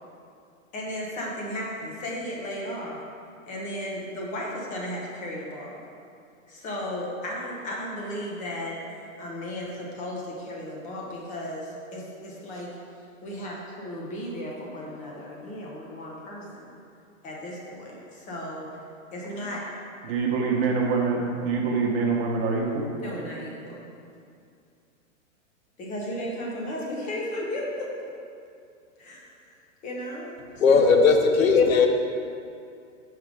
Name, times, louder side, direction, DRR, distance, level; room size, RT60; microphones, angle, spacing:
voice 1, 0.7-3.0 3.5-5.8 6.5-8.8 9.2-12.7 13.2-16.6 17.2-18.7 19.1-19.7 23.0-23.8 25.8-27.9 29.0-29.2 29.8-31.0, left 1 dB, 20° left, -3 dB, 1.0 m, -35 dB
voice 2, 20.0-22.9, right 4 dB, 45° right, -1 dB, 1.2 m, -25 dB
voice 3, 30.6-31.9, left 5 dB, 90° left, 4 dB, 0.9 m, -18 dB
5.7 x 4.9 x 4.8 m, 2.4 s
hypercardioid pair, 150°, 40 cm